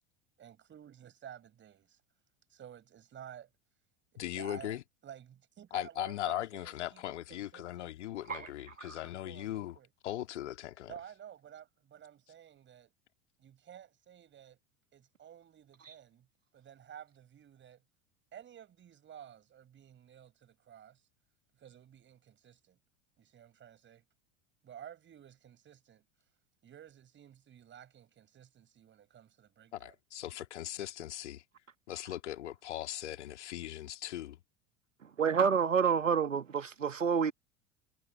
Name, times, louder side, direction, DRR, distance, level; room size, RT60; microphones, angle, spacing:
voice 1, 0.4-2.0 2.5-3.5 4.1-4.8 5.0-7.9 8.4-8.5 9.2-9.9 10.9-12.9 13.4-14.6 14.9-16.3 16.5-17.8 18.3-21.0 21.6-22.8 23.2-24.0 24.6-26.0 26.6-29.9, right 9 dB, 30° right, 6.4 m, -52 dB
voice 2, 4.2-4.8 5.7-9.8 10.0-10.9 29.7-31.4 31.9-34.4, left 13 dB, 65° left, 2.2 m, -39 dB
voice 3, 35.2-37.3, right 6 dB, 80° right, 1.5 m, -28 dB
figure-of-eight pair, 80°, 38 cm